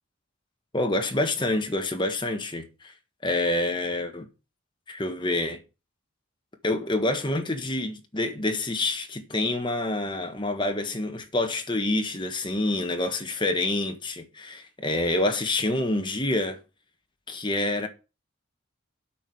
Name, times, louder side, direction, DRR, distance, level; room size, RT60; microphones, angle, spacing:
voice 1, 0.7-2.9 3.2-4.3 4.9-5.6 6.6-16.6 17.3-17.9, left 2 dB, 25° left, 1.6 m, -27 dB
8.6 x 5.3 x 7.8 m
head